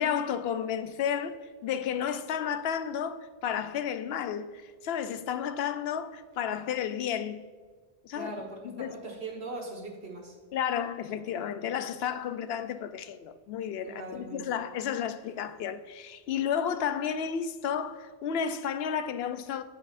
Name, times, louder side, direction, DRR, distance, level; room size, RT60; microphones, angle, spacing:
voice 1, 0.0-7.4 8.0-8.3 8.6-9.0 10.5-19.6, left 8 dB, 75° left, 0.8 m, -32 dB
voice 2, 8.1-10.3 13.8-14.5, right 2 dB, 85° right, 1.7 m, -40 dB
9.8 x 7.7 x 2.5 m
omnidirectional pair, 1.0 m